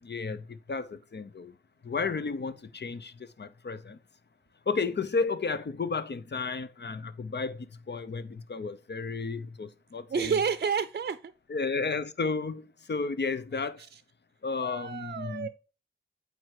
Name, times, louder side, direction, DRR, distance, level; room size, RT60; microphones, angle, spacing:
voice 1, 0.0-1.5 1.8-4.0 4.7-10.3 11.5-13.8 14.4-15.5, left 4 dB, 55° left, 0.7 m, -33 dB
voice 2, 10.1-11.3 13.5-14.0 14.6-15.5, right 6 dB, 50° right, 0.5 m, -31 dB
8.7 x 3.4 x 4.7 m
cardioid pair, 40°, 21 cm